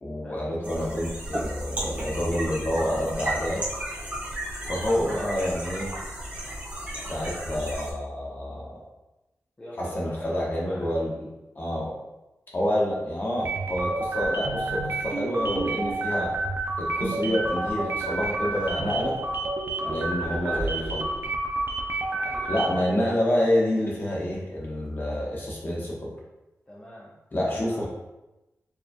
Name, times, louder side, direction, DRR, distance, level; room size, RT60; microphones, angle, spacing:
voice 1, 0.0-3.6 4.7-5.9 7.1-8.7 9.8-11.3 11.5-12.0 12.5-16.3 16.8-19.2 19.9-21.0 22.5-26.1 27.3-27.9, left 1 dB, 40° left, -4 dB, 1.1 m, -28 dB
sound 1, 0.6-7.9, right 1 dB, 30° right, 1.3 m, -34 dB
voice 2, 6.9-7.2 9.6-11.0 19.8-21.3 21.8-22.6 26.7-27.8, left 1 dB, 20° left, -7 dB, 0.6 m, -43 dB
sound 2, 13.4-22.9, right 2 dB, 45° right, 0.4 m, -29 dB
4.7 x 3.2 x 2.2 m, 0.98 s
wide cardioid pair, 145°, 5 cm